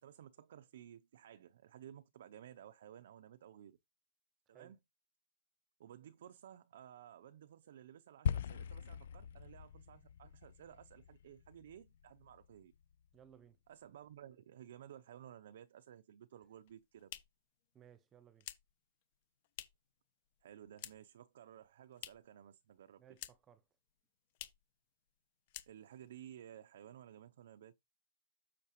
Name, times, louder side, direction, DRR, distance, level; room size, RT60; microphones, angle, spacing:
voice 1, 0.0-3.8 4.5-4.8 5.8-12.7 13.7-17.1 20.4-23.0 25.7-27.7, right 10 dB, 70° right, 0.6 m, -55 dB
sound 1, 8.3-12.6, left 8 dB, 70° left, 0.3 m, -41 dB
voice 2, 13.1-13.6 17.7-18.5 23.0-23.6, right 9 dB, 20° right, 0.8 m, -61 dB
sound 2, 16.5-20.0 20.2-21.2 21.5-22.4 22.7-23.6 23.9-24.0 24.3-24.7 25.1-25.2 25.5-26.1, left 13 dB, 45° left, 1.0 m, -52 dB
8.5 x 5.9 x 3.0 m
hypercardioid pair, 160°, 0 cm